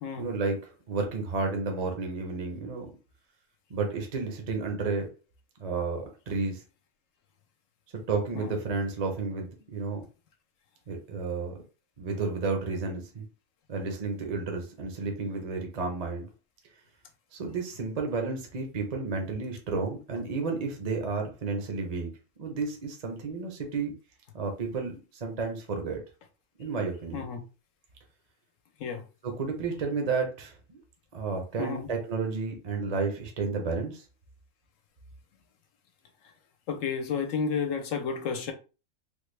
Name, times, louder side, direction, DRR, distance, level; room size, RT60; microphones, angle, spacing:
voice 1, 0.2-2.9 3.7-5.1 5.6-6.6 8.1-10.0 10.9-11.5 12.0-13.3 13.7-16.3 17.3-22.1 22.4-23.9 24.3-26.0 26.6-27.2 29.2-30.8 31.1-34.0, right 4 dB, 35° right, 0.7 m, -32 dB
voice 2, 31.6-31.9 36.7-38.5, left 6 dB, 75° left, 1.0 m, -31 dB
3.5 x 2.2 x 3.2 m
omnidirectional pair, 1.4 m